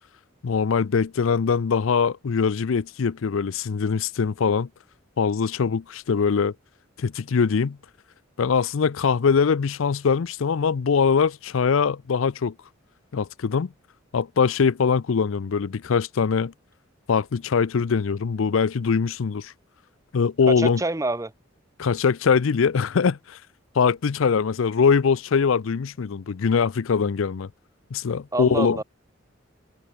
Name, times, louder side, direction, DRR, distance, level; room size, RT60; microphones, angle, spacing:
voice 1, 0.4-4.7 5.2-6.5 7.0-7.8 8.4-12.5 13.1-13.7 14.1-16.5 17.1-19.5 20.1-20.8 21.8-23.4 23.8-27.5 27.9-28.8, left 5 dB, 80° left, 0.5 m, -22 dB
voice 2, 20.5-21.3 28.3-28.8, right 2 dB, 15° right, 0.8 m, -27 dB
head